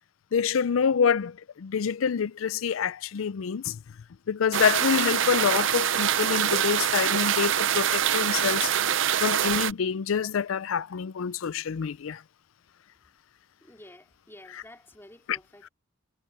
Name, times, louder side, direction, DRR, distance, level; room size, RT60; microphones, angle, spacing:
voice 1, 0.3-3.8 4.3-8.7 9.2-12.2 15.3-15.4, left 7 dB, 85° left, 0.4 m, -26 dB
sound 1, 4.5-9.7, right 9 dB, 70° right, 0.6 m, -25 dB
voice 2, 13.6-15.7, left 1 dB, 10° left, 3.1 m, -50 dB
head